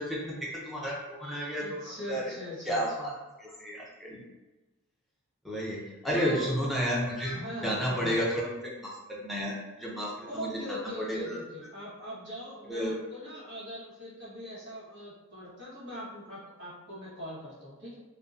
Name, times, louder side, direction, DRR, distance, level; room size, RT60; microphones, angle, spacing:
voice 1, 0.0-1.8 2.1-2.3 2.7-3.1 3.4-4.3 5.4-7.4 7.6-11.4 12.7-13.0, equal, ahead, -5 dB, 0.5 m, -32 dB
voice 2, 1.6-3.1 6.1-6.5 7.3-8.2 10.3-18.0, equal, 50° right, -9 dB, 1.0 m, -41 dB
2.6 x 2.1 x 2.4 m, 1.1 s
head